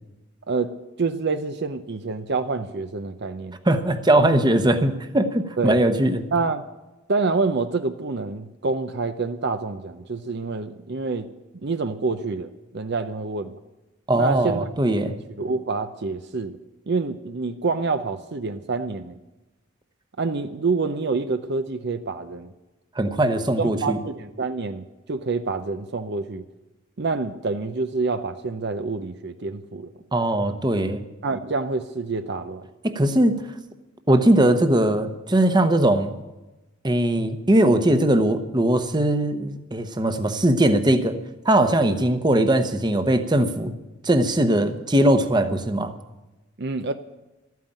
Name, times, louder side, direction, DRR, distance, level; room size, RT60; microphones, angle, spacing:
voice 1, 0.5-3.6 5.6-5.8 6.3-6.6 7.1-11.3 11.6-13.6 14.1-14.7 15.0-16.6 16.9-19.2 20.2-22.5 23.6-26.4 27.0-29.9 31.2-32.7 46.6-46.9, right 4 dB, 55° right, 9 dB, 0.7 m, -27 dB
voice 2, 3.7-6.3 14.1-15.1 23.0-24.0 30.1-31.0 32.8-33.4 34.1-36.1 36.8-41.2 41.4-43.7 44.0-45.9, right 1 dB, 20° right, 8 dB, 1.0 m, -20 dB
13.0 x 9.4 x 8.8 m, 1.1 s
head